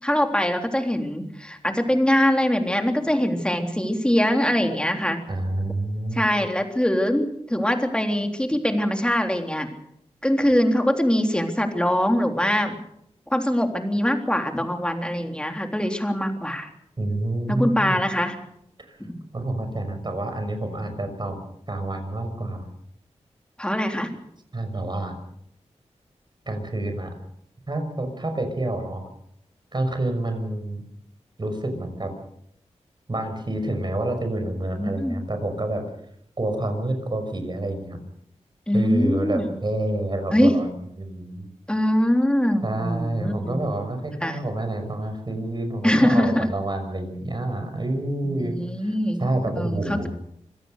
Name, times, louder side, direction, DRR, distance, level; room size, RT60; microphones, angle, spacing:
voice 1, 0.0-5.2 6.1-9.7 10.2-12.8 13.3-16.7 17.5-18.4 19.0-19.1 23.6-24.2 34.8-35.2 38.7-39.6 40.3-40.5 41.7-43.6 44.2-44.4 45.8-46.5 48.2-50.1, equal, 10° left, 4 dB, 3.7 m, -23 dB
voice 2, 5.3-6.3 17.0-18.0 18.8-19.0 19.3-21.4 21.7-22.6 24.5-25.1 26.5-27.1 27.7-29.0 29.7-30.8 31.4-32.1 33.1-35.8 36.4-38.0 38.7-41.5 42.6-48.9 49.2-50.1, right 1 dB, 40° right, 7 dB, 6.2 m, -28 dB
26.0 x 17.5 x 6.7 m, 0.72 s
wide cardioid pair, 75°, 12 cm